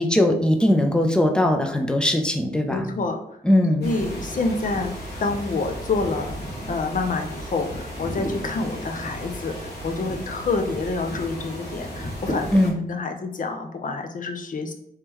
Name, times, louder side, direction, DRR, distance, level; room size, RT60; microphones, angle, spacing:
voice 1, 0.0-2.9 3.4-3.9 12.5-12.8, left 1 dB, 5° left, 4 dB, 0.5 m, -20 dB
voice 2, 2.7-3.2 3.8-6.4 6.7-14.7, left 3 dB, 55° left, 5 dB, 0.6 m, -28 dB
sound 1, 3.8-12.7, equal, 80° left, 1.2 m, -34 dB
3.5 x 3.2 x 3.0 m, 0.78 s
cardioid pair, 80°, 17 cm